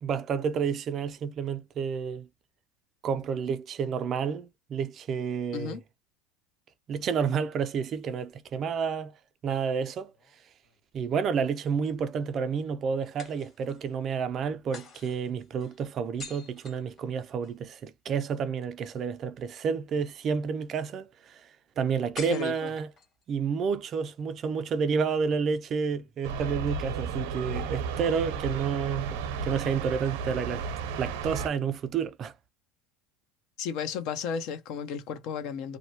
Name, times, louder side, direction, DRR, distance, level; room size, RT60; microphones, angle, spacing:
voice 1, 0.0-2.3 3.0-5.8 6.9-9.1 9.4-10.1 10.9-21.5 21.8-22.9 23.3-30.6 31.0-32.3, right 6 dB, 35° right, 0.4 m, -30 dB
sound 1, 10.1-11.1 13.2-13.9 14.7-17.6 22.1-23.2, left 4 dB, 35° left, 1.6 m, -47 dB
voice 2, 22.3-22.7 33.6-35.8, left 7 dB, 60° left, 0.7 m, -34 dB
sound 2, 26.2-31.5, right 5 dB, 85° right, 0.7 m, -33 dB
2.7 x 2.1 x 2.7 m
supercardioid pair, 135°, 0 cm